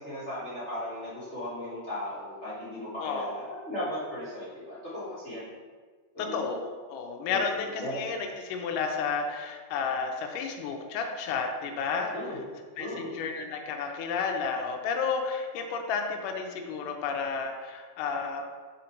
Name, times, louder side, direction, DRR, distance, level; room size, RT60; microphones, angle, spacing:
voice 1, 0.0-5.5 6.1-6.4 7.3-8.0 12.1-12.5 12.8-13.1, left 1 dB, 50° left, -11 dB, 0.8 m, -37 dB
voice 2, 3.0-3.4 6.2-12.2 12.8-18.4, left 5 dB, 80° left, 3 dB, 2.1 m, -32 dB
5.1 x 4.2 x 4.4 m, 1.5 s
omnidirectional pair, 3.8 m